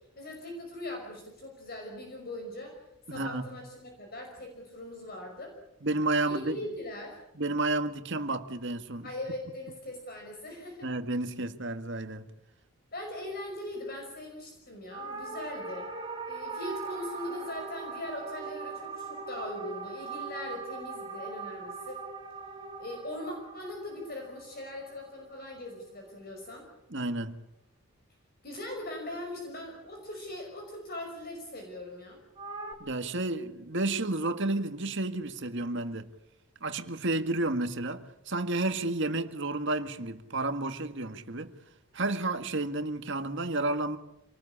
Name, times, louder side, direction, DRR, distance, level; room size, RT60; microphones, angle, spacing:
voice 1, 0.2-2.7 3.1-5.5 6.2-7.2 9.0-10.9 12.9-15.9 16.2-22.1 22.8-26.7 28.4-32.2, left 1 dB, 45° left, 5.6 m, -40 dB
voice 2, 3.1-3.6 5.8-6.6 7.4-9.1 10.8-12.2 26.9-27.3 32.8-36.1 36.6-41.5 41.9-44.0, right 2 dB, 55° right, 1.8 m, -31 dB
sound 1, 14.9-25.4 32.4-32.7, right 4 dB, 25° right, 3.0 m, -40 dB
27.0 x 19.5 x 8.7 m
head